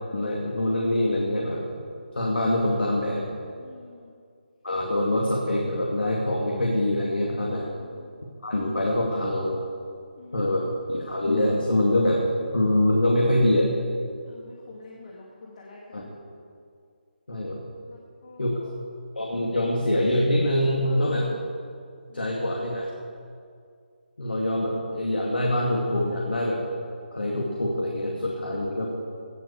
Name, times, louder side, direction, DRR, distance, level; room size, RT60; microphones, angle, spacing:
voice 1, 0.1-1.6 2.1-3.2 4.6-7.7 8.4-9.6 10.3-12.2 12.5-13.7 15.9-16.0 17.3-17.6 18.4-18.5 19.2-21.3 22.1-22.9 24.2-26.6 27.1-28.9, left 1 dB, 70° left, -2 dB, 2.5 m, -24 dB
voice 2, 3.6-4.1 7.5-8.1 10.1-10.7 14.2-16.0 17.9-18.7 20.8-21.4 22.1-22.4, left 3 dB, 45° left, -3 dB, 2.1 m, -45 dB
17.5 x 7.4 x 7.0 m, 2.3 s
figure-of-eight pair, 155°, 6 cm